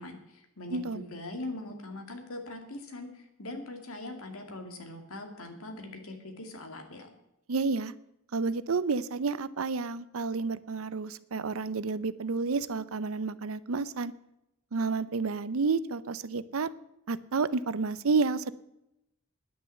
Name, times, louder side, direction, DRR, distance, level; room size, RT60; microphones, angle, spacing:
voice 1, 0.0-7.1, left 2 dB, 85° left, 4 dB, 2.4 m, -41 dB
voice 2, 0.7-1.0 7.5-7.9 8.3-14.1 14.7-16.7 17.1-18.5, right 4 dB, 75° right, 16 dB, 0.6 m, -30 dB
10.0 x 9.3 x 7.7 m, 0.86 s
head